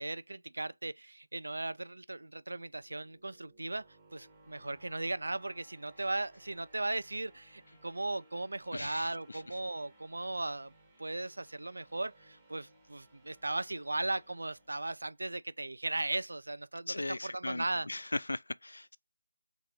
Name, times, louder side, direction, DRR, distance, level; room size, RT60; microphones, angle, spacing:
voice 1, 0.0-3.9 4.1-10.7 11.0-17.9, right 2 dB, 80° right, 0.4 m, -37 dB
sound 1, 2.5-15.5, right 2 dB, 5° right, 0.9 m, -63 dB
voice 2, 8.7-9.4 16.9-19.0, left 2 dB, 80° left, 0.4 m, -38 dB
3.7 x 2.9 x 3.6 m
figure-of-eight pair, 170°, 0 cm